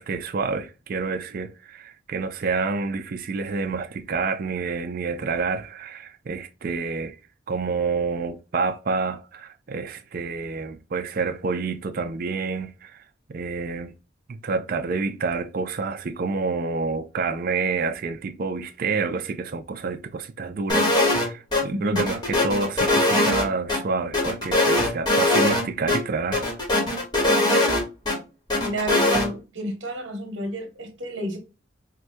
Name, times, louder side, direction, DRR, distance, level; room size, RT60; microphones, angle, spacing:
voice 1, 0.0-7.2 7.5-13.0 13.3-13.9 14.3-26.5, right 4 dB, 45° right, 0.4 m, -28 dB
sound 1, 20.7-21.3 21.5-21.6 22.0-23.8 24.1-25.6 25.9-26.0 26.3-28.2 28.5-29.3, left 1 dB, 20° left, 1.0 m, -21 dB
voice 2, 21.7-22.0 28.6-31.4, equal, 65° right, 1.1 m, -30 dB
4.5 x 2.1 x 2.6 m
head